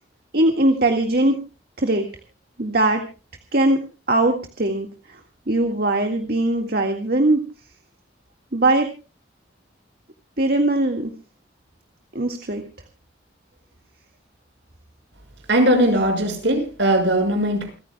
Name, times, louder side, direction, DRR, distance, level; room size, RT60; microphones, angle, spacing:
voice 1, 0.3-1.4 1.8-2.1 2.6-3.0 3.5-3.8 4.1-5.2 5.5-7.4 8.5-8.9 10.4-11.1 12.1-12.6, right 2 dB, 55° right, 4 dB, 1.9 m, -20 dB
voice 2, 15.5-17.7, right 1 dB, 75° right, 5 dB, 6.2 m, -19 dB
28.5 x 14.5 x 2.3 m, 0.33 s
head